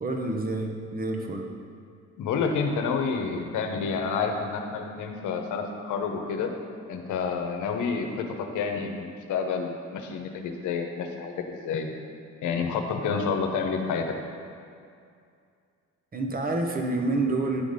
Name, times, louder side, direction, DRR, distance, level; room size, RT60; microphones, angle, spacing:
voice 1, 0.0-1.5 16.1-17.6, right 2 dB, 30° right, 2 dB, 1.0 m, -28 dB
voice 2, 2.2-6.5 6.9-8.3 8.5-11.9 12.4-14.1, left 5 dB, 80° left, 4 dB, 1.0 m, -29 dB
10.0 x 3.9 x 5.1 m, 2.3 s
cardioid pair, 90°, 30 cm